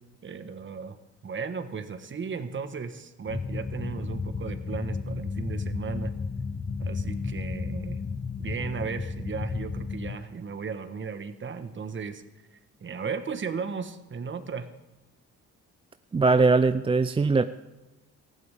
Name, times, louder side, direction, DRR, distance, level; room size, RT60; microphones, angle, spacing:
voice 1, 0.2-6.1 6.8-8.0 8.4-12.2 12.5-14.7, right 5 dB, 40° right, 9 dB, 1.3 m, -35 dB
sound 1, 3.3-10.2, left 4 dB, 25° left, 0.6 m, -33 dB
voice 2, 16.1-17.5, right 3 dB, 20° right, 11 dB, 0.4 m, -21 dB
18.5 x 15.0 x 3.6 m, 1.0 s
cardioid pair, 90°, 30 cm